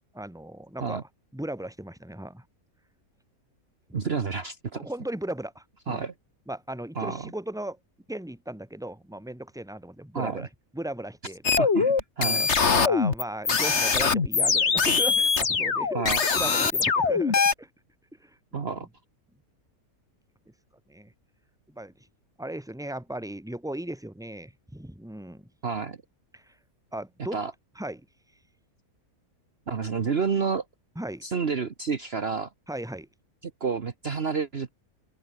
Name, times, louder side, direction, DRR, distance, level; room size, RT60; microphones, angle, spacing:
voice 1, 0.0-2.4 3.9-4.0 4.7-6.0 6.5-7.8 8.1-10.5 10.7-11.7 12.2-12.5 12.8-16.0 16.3-17.7 18.2-18.9 20.9-21.1 21.7-21.9 22.4-25.5 26.3-26.5 26.9-27.4 27.8-28.1 31.0-31.2 32.7-33.1, right 1 dB, ahead, 2.4 m, -37 dB
voice 2, 3.9-4.9 5.9-6.1 7.0-7.3 10.1-10.5 11.6-12.4 15.9-16.4 18.5-18.9 25.6-26.0 27.3-27.5 29.7-30.6 31.2-32.5 33.4-34.7, right 5 dB, 45° right, 1.4 m, -29 dB
sound 1, 11.4-17.5, left 5 dB, 50° left, 2.0 m, -23 dB
open air
omnidirectional pair, 1.5 m